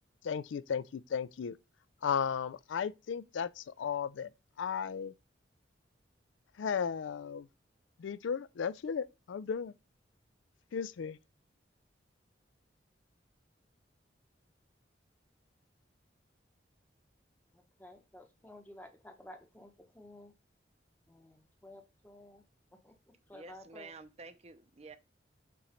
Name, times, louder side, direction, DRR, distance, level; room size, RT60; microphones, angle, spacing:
voice 1, 0.2-1.6 2.0-4.3 4.6-5.1 6.6-7.5 8.0-9.7 10.7-11.2, left 7 dB, 80° left, 0.4 m, -35 dB
voice 2, 17.5-20.3 21.1-22.4 22.8-22.9 23.3-23.9, left 1 dB, 10° left, 0.9 m, -53 dB
voice 3, 23.3-25.0, right 3 dB, 35° right, 0.6 m, -50 dB
6.9 x 3.1 x 5.0 m
head